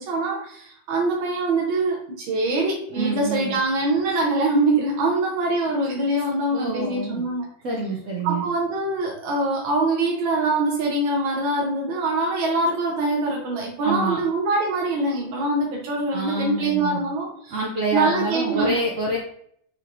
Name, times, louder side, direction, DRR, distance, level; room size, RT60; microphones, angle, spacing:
voice 1, 0.0-7.5 8.2-17.6 17.9-18.8, right 2 dB, 90° right, -1 dB, 1.6 m, -24 dB
voice 2, 2.9-3.6 6.5-7.2 7.6-8.4 13.8-14.2 16.1-17.0 17.5-19.2, right 1 dB, 70° right, -2 dB, 0.7 m, -27 dB
4.7 x 3.0 x 2.5 m, 0.66 s
omnidirectional pair, 2.1 m